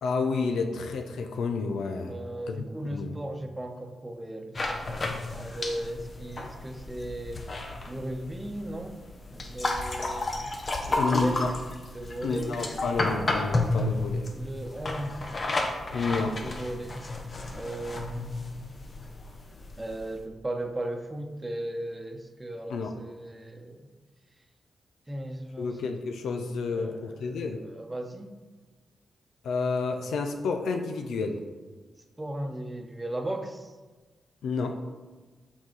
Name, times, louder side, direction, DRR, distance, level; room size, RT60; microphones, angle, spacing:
voice 1, 0.0-2.2 2.5-2.6 2.9-3.2 11.0-11.5 12.2-14.3 15.9-16.4 22.7-22.9 25.6-27.6 29.4-31.4 34.4-34.8, left 4 dB, 75° left, 5 dB, 0.5 m, -30 dB
voice 2, 2.1-7.5 7.9-9.0 9.3-10.5 10.9-11.4 11.9-12.6 14.3-15.4 16.4-17.2 17.5-18.3 19.7-23.9 25.1-25.8 26.7-27.0 27.3-28.4 32.2-33.7, right 1 dB, 25° right, 5 dB, 0.9 m, -37 dB
sound 1, 4.5-20.2, left 2 dB, 45° left, 0.9 m, -32 dB
6.2 x 3.9 x 4.6 m, 1.3 s
hypercardioid pair, 40°, 0 cm